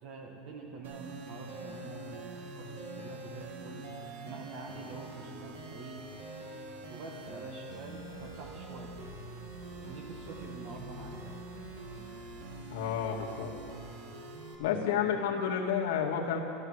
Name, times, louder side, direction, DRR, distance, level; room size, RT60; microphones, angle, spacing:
voice 1, 0.0-2.3 2.6-3.8 4.2-6.0 6.9-8.9 9.8-11.1 14.7-15.2, right 4 dB, 55° right, 0 dB, 2.0 m, -46 dB
sound 1, 0.8-14.6, right 2 dB, 90° right, 2.5 m, -44 dB
voice 2, 12.7-13.5 14.6-16.4, left 8 dB, 85° left, 0 dB, 2.1 m, -30 dB
15.0 x 12.5 x 6.5 m, 2.6 s
supercardioid pair, 140°, 0 cm